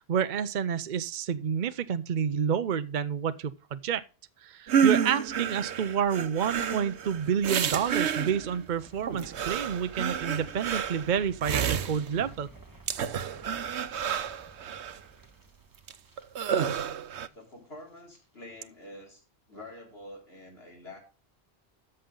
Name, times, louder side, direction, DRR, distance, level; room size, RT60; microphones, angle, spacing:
voice 1, 0.1-4.0 4.4-12.5, right 7 dB, 50° right, 0.7 m, -29 dB
sound 1, 4.7-8.6 9.1-12.3 12.9-15.0 15.9-16.0 16.2-17.3, right 8 dB, 90° right, 1.1 m, -30 dB
sound 2, 6.4-17.5 17.8-18.2 18.5-18.6, right 2 dB, 20° right, 1.4 m, -53 dB
voice 2, 17.3-19.2 19.5-21.0, left 1 dB, 70° left, 4.2 m, -47 dB
13.5 x 6.6 x 3.7 m
omnidirectional pair, 1.1 m